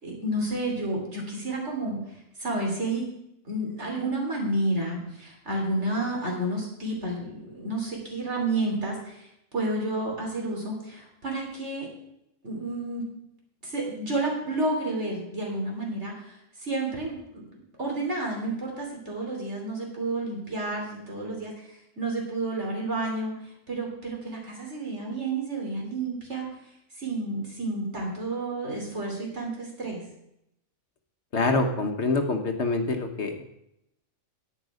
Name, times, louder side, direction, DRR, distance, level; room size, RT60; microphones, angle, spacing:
voice 1, 0.0-2.0 2.4-3.1 3.4-11.9 12.4-13.0 13.6-26.5 27.0-30.0, right 2 dB, 55° right, -1 dB, 3.6 m, -31 dB
voice 2, 31.3-33.4, left 3 dB, 60° left, 5 dB, 1.3 m, -26 dB
10.5 x 9.2 x 4.9 m, 0.80 s
omnidirectional pair, 1.4 m